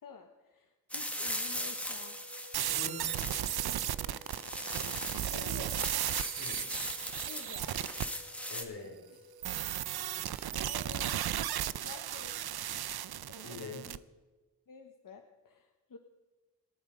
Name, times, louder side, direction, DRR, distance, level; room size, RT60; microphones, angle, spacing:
voice 1, 0.0-2.2 4.1-4.4 4.8-5.8 7.2-7.7 9.8-10.1 10.6-11.2 11.7-12.4 12.8-13.0 13.3-14.0 14.7-16.0, left 5 dB, 60° left, 4 dB, 1.3 m, -51 dB
sound 1, 0.9-8.6, equal, 5° left, 1.7 m, -39 dB
sound 2, 2.0-9.7, left 1 dB, 60° right, 4.2 m, -57 dB
sound 3, 2.5-8.0 9.4-14.0, right 11 dB, 85° right, 0.6 m, -35 dB
voice 2, 2.7-3.2 6.4-6.7 8.5-9.0 13.4-13.8, left 3 dB, 85° left, -1 dB, 4.7 m, -44 dB
27.0 x 8.9 x 5.2 m, 1.2 s
wide cardioid pair, 95°, 37 cm